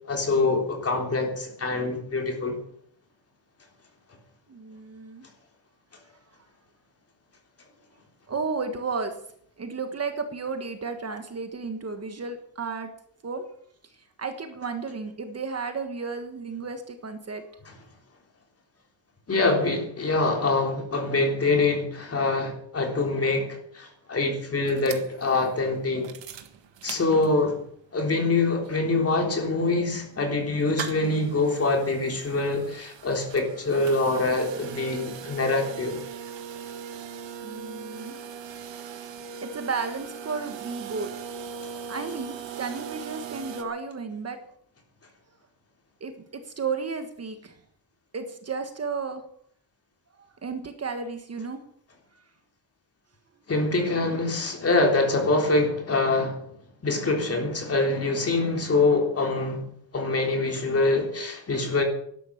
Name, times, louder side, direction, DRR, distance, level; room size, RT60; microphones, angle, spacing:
voice 1, 0.1-2.5 19.3-26.1 26.8-27.6 27.9-36.0 53.5-56.4 56.8-59.6 59.9-61.8, left 3 dB, 35° left, 2 dB, 3.7 m, -24 dB
voice 2, 4.5-5.2 8.3-9.1 9.6-12.9 13.2-13.4 14.2-17.4 37.4-38.2 39.4-41.1 41.6-44.4 46.0-47.6 48.1-49.2 50.4-51.6, right 4 dB, 35° right, 7 dB, 1.5 m, -33 dB
sound 1, 24.7-27.6 28.0-28.1 28.3-43.6, right 7 dB, 85° right, 1.8 m, -40 dB
12.5 x 11.5 x 7.2 m, 0.64 s
wide cardioid pair, 175°, 43 cm